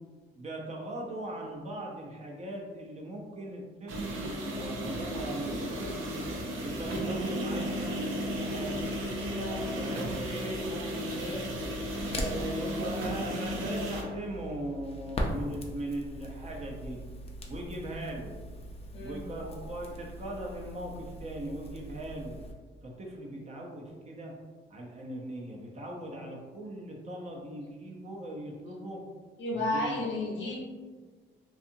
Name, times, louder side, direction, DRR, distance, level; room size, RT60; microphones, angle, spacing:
voice 1, 0.4-6.2 6.6-8.9 9.8-11.4 12.1-17.0 17.5-18.3 19.0-22.4 22.8-24.3 24.7-29.0 29.5-30.1, right 1 dB, 35° right, -2 dB, 0.6 m, -39 dB
sound 1, 3.9-14.0, equal, 90° right, 0.6 m, -34 dB
voice 2, 9.3-9.7 18.9-19.3 29.4-30.6, left 1 dB, 70° left, -3 dB, 0.9 m, -32 dB
Crackle, 11.5-22.5, equal, 30° left, 0.5 m, -40 dB
2.7 x 2.4 x 2.6 m, 1.5 s
cardioid pair, 90°, 20 cm